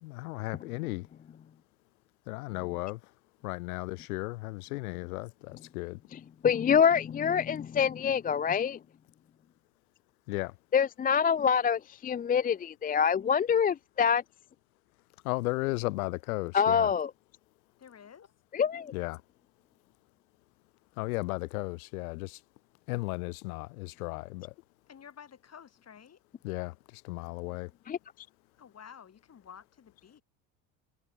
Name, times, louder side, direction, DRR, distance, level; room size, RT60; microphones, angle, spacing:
voice 1, 0.0-1.1 2.3-3.0 3.4-6.0 10.3-10.5 15.2-16.9 18.9-19.2 21.0-22.4 22.9-24.5 26.4-27.7, left 22 dB, 85° left, 0.8 m, -35 dB
voice 2, 6.1-8.8 10.7-14.2 16.5-17.1 18.5-18.9 27.9-28.0, left 7 dB, 20° left, 0.4 m, -26 dB
voice 3, 17.8-18.3 24.9-26.2 28.6-30.2, left 8 dB, 35° left, 4.7 m, -51 dB
supercardioid pair, 80°, 42 cm